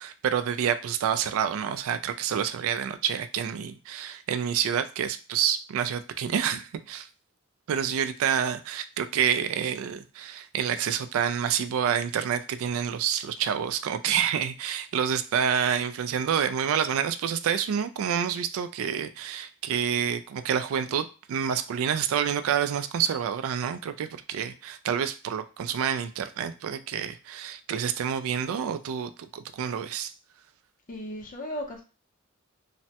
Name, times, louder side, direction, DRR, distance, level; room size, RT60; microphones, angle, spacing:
voice 1, 0.0-7.1 7.7-30.1, right 8 dB, 65° right, 0.3 m, -28 dB
voice 2, 30.9-31.8, equal, 40° left, 0.6 m, -35 dB
3.2 x 2.1 x 2.8 m
head